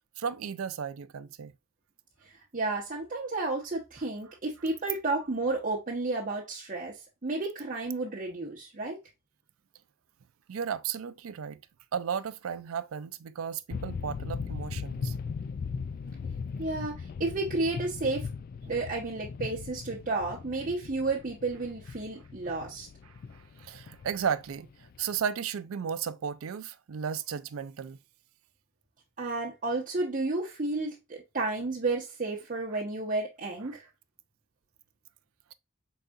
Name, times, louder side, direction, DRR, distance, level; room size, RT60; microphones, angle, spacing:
voice 1, 0.2-1.5 10.5-11.6 11.9-15.1 23.3-24.7 25.0-28.0, right 7 dB, 80° right, 0.4 m, -34 dB
voice 2, 2.5-9.0 16.6-18.3 18.7-22.9 29.2-33.8, right 3 dB, 40° right, 1.0 m, -32 dB
sound 1, 13.7-25.2, left 5 dB, 45° left, 0.3 m, -39 dB
4.6 x 4.0 x 2.4 m
head